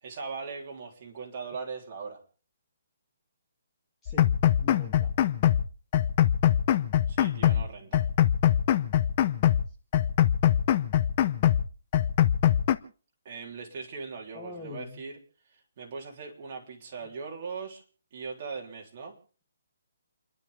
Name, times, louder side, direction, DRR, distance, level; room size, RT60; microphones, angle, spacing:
voice 1, 0.0-2.2 7.1-8.1 13.3-15.2 15.5-17.8 18.1-19.1, right 5 dB, 35° right, 0 dB, 3.6 m, -40 dB
voice 2, 4.0-5.1 7.4-7.8 14.3-15.0, left 4 dB, 5° left, -3 dB, 2.5 m, -43 dB
sound 1, 4.1-5.7 5.9-7.7 7.9-9.7 9.9-11.7 11.9-12.8, left 11 dB, 25° left, 0.7 m, -23 dB
30.0 x 12.0 x 3.5 m, 0.40 s
hypercardioid pair, 175°, 0 cm